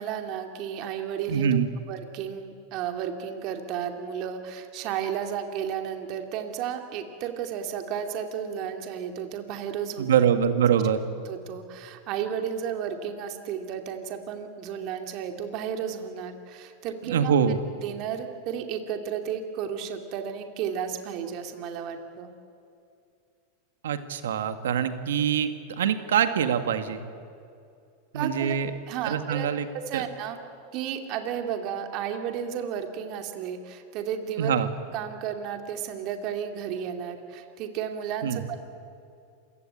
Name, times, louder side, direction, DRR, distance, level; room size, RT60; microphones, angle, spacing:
voice 1, 0.0-1.6 1.9-10.3 11.2-17.3 17.8-22.3 28.1-28.6 28.9-29.5 29.9-30.4 30.7-34.6 34.9-38.6, right 8 dB, 50° right, 5 dB, 2.5 m, -33 dB
voice 2, 1.3-1.7 10.0-11.0 17.0-17.6 23.8-25.5 25.8-27.1 28.1-28.7 29.0-29.7 29.9-30.0 34.4-34.7 38.2-38.4, right 8 dB, 85° right, 9 dB, 1.8 m, -24 dB
27.5 x 16.5 x 9.1 m, 2.4 s
supercardioid pair, 125°, 0 cm